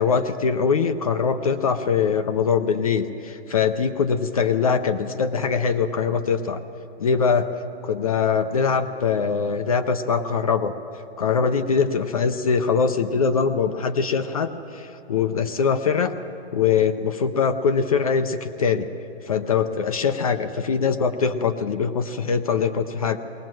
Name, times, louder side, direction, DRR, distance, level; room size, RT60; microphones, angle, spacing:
voice 1, 0.0-6.6 7.0-7.5 7.8-10.7 11.2-16.1 16.5-18.9 19.2-23.2, left 6 dB, 35° left, 9 dB, 0.6 m, -22 dB
21.0 x 18.5 x 7.6 m, 2.9 s
hypercardioid pair, 180°, 32 cm